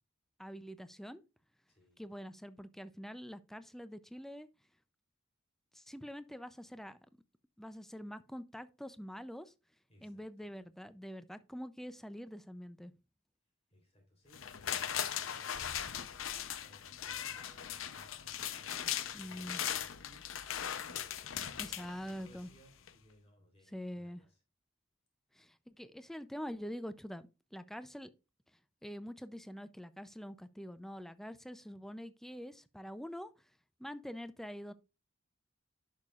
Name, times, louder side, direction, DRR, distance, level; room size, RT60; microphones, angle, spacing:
voice 1, 0.4-1.2 2.0-4.5 5.7-7.0 7.6-9.5 10.0-12.9 19.1-19.6 21.6-22.5 23.7-24.2 25.4-28.1 28.8-33.3 33.8-34.7, equal, ahead, 0.4 m, -45 dB
voice 2, 1.7-2.1 9.9-10.2 13.7-24.4, equal, 30° left, 3.5 m, -63 dB
sound 1, 14.3-22.5 22.9-23.0, left 9 dB, 75° left, 0.7 m, -39 dB
10.5 x 6.6 x 2.4 m
head